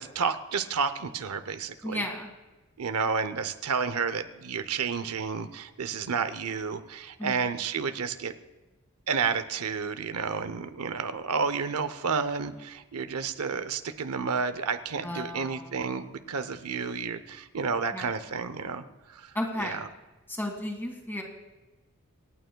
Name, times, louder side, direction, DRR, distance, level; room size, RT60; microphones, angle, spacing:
voice 1, 0.0-2.0 2.8-8.3 9.1-19.3 19.6-19.8, right 5 dB, 85° right, 10 dB, 0.7 m, -31 dB
voice 2, 1.8-2.3 7.2-7.5 15.0-15.8 17.9-18.1 19.3-19.8 20.3-21.2, left 1 dB, 10° left, 2 dB, 1.9 m, -34 dB
27.0 x 9.2 x 2.3 m, 1.1 s
head